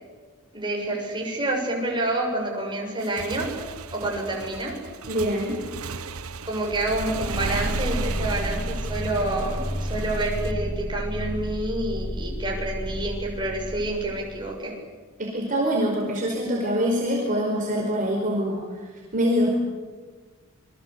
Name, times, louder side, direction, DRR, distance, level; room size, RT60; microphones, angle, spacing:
voice 1, 0.5-3.5 3.9-4.8 6.4-14.7, right 2 dB, 20° right, 0 dB, 6.9 m, -28 dB
Motorcycle / Engine, 2.9-10.5, right 5 dB, 70° right, 1.3 m, -36 dB
voice 2, 5.1-5.6 15.2-19.5, equal, 40° right, -1 dB, 4.9 m, -25 dB
sound 1, 6.7-14.5, equal, 30° left, 3.0 m, -31 dB
28.0 x 23.5 x 8.3 m, 1.4 s
head